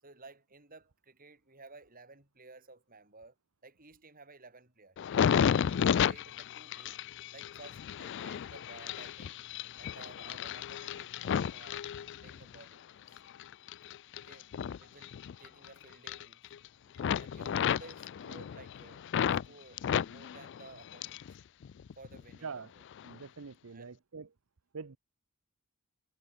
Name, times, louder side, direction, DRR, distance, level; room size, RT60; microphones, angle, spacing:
voice 1, 0.0-3.3 3.6-7.0 7.3-9.4 9.8-11.9 12.2-13.2 14.2-14.5 14.8-16.4 16.9-21.2 22.0-22.8 23.7-24.0, right 3 dB, 40° right, 6.8 m, -55 dB
sound 1, 5.0-12.6 13.1-15.7 15.9-16.7 17.0-19.5 19.8-21.3 21.6-22.4 22.9-23.1, left 8 dB, 55° left, 0.3 m, -33 dB
voice 2, 22.4-22.7 23.0-24.3 24.7-25.0, right 5 dB, 70° right, 0.8 m, -44 dB
head